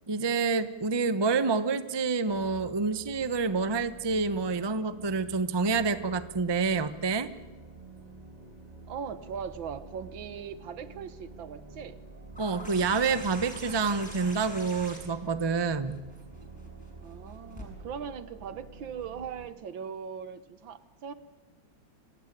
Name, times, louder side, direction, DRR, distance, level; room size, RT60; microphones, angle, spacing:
voice 1, 0.1-7.3 12.4-15.9, right 4 dB, 40° right, 12 dB, 0.3 m, -28 dB
sound 1, 2.2-19.5, right 3 dB, 20° right, 2.2 m, -49 dB
voice 2, 8.9-12.0 17.0-21.1, right 7 dB, 70° right, 13 dB, 1.9 m, -39 dB
sound 2, 12.3-17.6 19.0-19.1, equal, 5° left, 6.4 m, -45 dB
26.0 x 19.0 x 10.0 m, 1.2 s
omnidirectional pair, 2.2 m